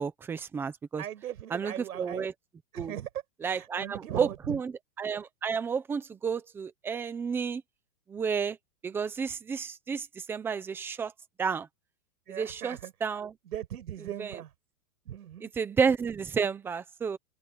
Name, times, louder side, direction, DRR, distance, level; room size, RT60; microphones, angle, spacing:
voice 1, 0.0-1.0 1.5-2.3 2.8-2.9 3.4-4.7 5.0-7.6 8.1-8.6 8.8-11.1 11.4-11.7 12.3-13.3 14.2-14.3 15.4-17.2, right 6 dB, 5° right, 0.6 m, -31 dB
voice 2, 1.0-2.3 2.7-3.1 3.4-4.6 12.3-12.9 13.4-14.5 15.0-15.5, right 11 dB, 75° right, 6.7 m, -38 dB
supercardioid pair, 165°, 45 cm